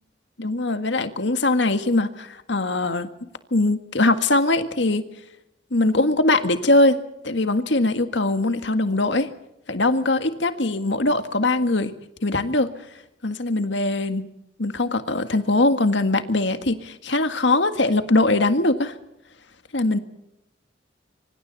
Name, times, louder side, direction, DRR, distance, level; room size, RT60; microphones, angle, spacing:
voice 1, 0.4-3.1 3.5-5.0 5.7-9.3 9.7-11.9 12.2-12.7 13.2-14.3 14.6-19.0 19.7-20.0, left 2 dB, 65° left, 9 dB, 1.8 m, -21 dB
26.0 x 25.0 x 4.2 m, 0.83 s
head